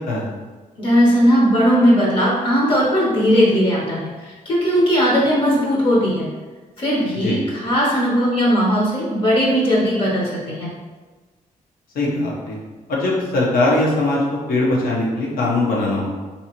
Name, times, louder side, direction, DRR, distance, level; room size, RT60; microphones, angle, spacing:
voice 1, 0.8-6.3 6.8-10.7, equal, 35° left, -5 dB, 0.8 m, -18 dB
voice 2, 11.9-12.6 12.9-14.2 14.5-16.2, left 2 dB, 85° left, -4 dB, 1.0 m, -20 dB
3.8 x 2.9 x 2.9 m, 1.3 s
wide cardioid pair, 180°, 14 cm